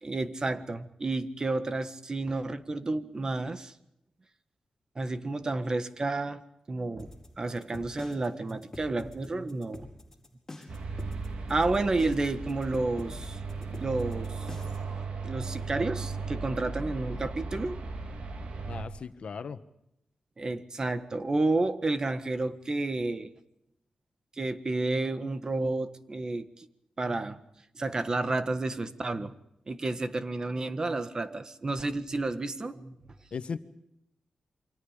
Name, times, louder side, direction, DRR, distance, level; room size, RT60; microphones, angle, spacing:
voice 1, 0.0-3.7 4.9-6.4 6.7-9.9 11.5-14.5 15.2-17.8 20.4-23.3 24.4-26.7 27.0-27.4 27.7-29.3 29.7-32.9, right 2 dB, 35° right, 11 dB, 1.6 m, -31 dB
sound 1, 7.0-14.9, left 2 dB, 15° left, 4.9 m, -45 dB
sound 2, 10.7-18.8, right 3 dB, 65° right, 3.2 m, -36 dB
voice 2, 18.7-19.6 33.3-33.6, left 5 dB, 65° left, 10 dB, 1.5 m, -37 dB
28.5 x 24.5 x 5.2 m, 0.81 s
wide cardioid pair, 100°, 2 cm